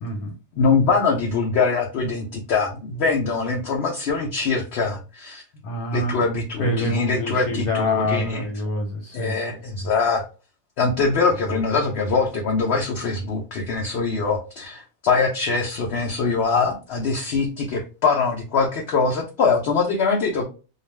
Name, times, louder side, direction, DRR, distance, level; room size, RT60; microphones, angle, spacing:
voice 1, 0.0-0.3 5.6-6.2 6.6-9.4 11.5-11.6, left 1 dB, 85° left, 0 dB, 1.1 m, -26 dB
voice 2, 0.6-5.4 5.9-8.5 9.1-10.2 10.8-20.4, left 4 dB, 65° left, 0 dB, 0.6 m, -23 dB
2.4 x 2.3 x 3.1 m, 0.33 s
omnidirectional pair, 1.6 m